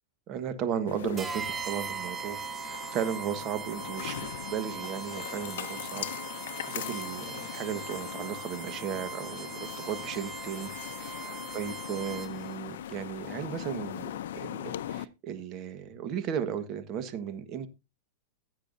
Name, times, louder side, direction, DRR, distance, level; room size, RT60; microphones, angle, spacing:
voice 1, 0.3-2.4 2.6-4.1 4.5-6.1 6.3-10.7 11.0-17.7, right 8 dB, 35° right, 1.4 m, -35 dB
sound 1, 0.9-15.0, left 11 dB, 75° left, 0.5 m, -40 dB
sound 2, 1.2-12.5, right 5 dB, 15° right, 0.7 m, -40 dB
15.5 x 8.1 x 2.7 m
supercardioid pair, 155°, 0 cm